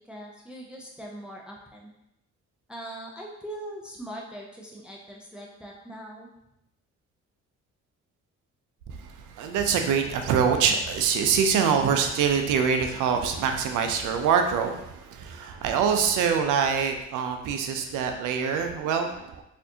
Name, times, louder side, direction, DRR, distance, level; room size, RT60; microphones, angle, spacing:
voice 1, 0.1-1.9 2.7-6.3, right 1 dB, 5° right, -1 dB, 0.5 m, -41 dB
voice 2, 8.9-19.4, right 6 dB, 90° right, 5 dB, 0.5 m, -25 dB
4.3 x 2.5 x 2.8 m, 0.84 s
cardioid pair, 90°, 30 cm